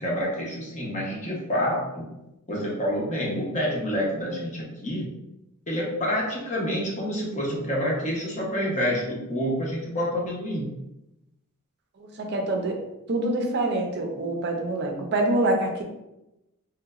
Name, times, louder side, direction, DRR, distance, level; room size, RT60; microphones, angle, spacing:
voice 1, 0.0-2.0 2.5-5.1 5.7-10.7, equal, 35° left, -3 dB, 0.8 m, -28 dB
voice 2, 12.2-12.8 13.1-15.8, right 2 dB, 50° right, 2 dB, 0.5 m, -25 dB
3.2 x 2.9 x 2.3 m, 0.92 s
head